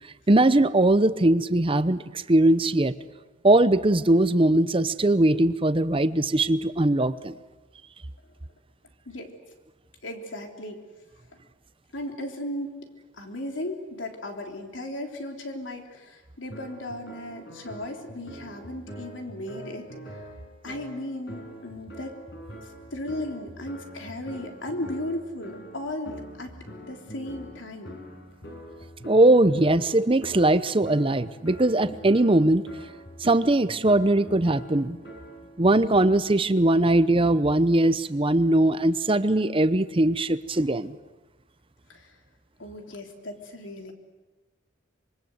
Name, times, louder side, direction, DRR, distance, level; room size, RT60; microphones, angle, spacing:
voice 1, 0.3-2.9 3.4-7.3 29.0-32.6 33.2-35.0 35.6-40.9, right 1 dB, 30° right, 14 dB, 0.8 m, -20 dB
voice 2, 10.0-10.8 11.9-12.8 13.1-19.9 20.6-22.1 22.9-26.1 26.4-26.5 26.8-28.0 41.9-42.1 42.6-43.9, left 1 dB, 80° left, 3 dB, 3.5 m, -36 dB
sound 1, 16.5-35.6, right 1 dB, 60° left, 7.0 m, -44 dB
25.5 x 23.5 x 7.9 m, 1.2 s
head